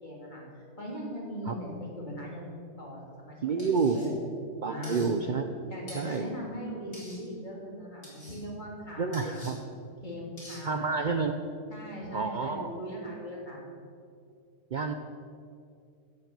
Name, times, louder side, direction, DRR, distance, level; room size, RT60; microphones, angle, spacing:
voice 1, 0.0-4.1 4.6-5.0 5.7-9.4 10.0-11.0 11.7-13.6, equal, 30° left, -3 dB, 3.3 m, -40 dB
voice 2, 3.4-4.2 4.6-5.6 5.9-6.3 9.0-9.6 10.6-11.4 12.1-12.7 14.7-14.9, right 4 dB, 65° right, 6 dB, 0.4 m, -29 dB
sound 1, 3.6-4.1 4.8-5.1 5.9-6.2 6.9-7.2 8.0-8.4 9.1-9.5 10.4-10.6, left 1 dB, 50° left, 4.5 m, -47 dB
15.5 x 6.7 x 7.4 m, 2.4 s
omnidirectional pair, 1.6 m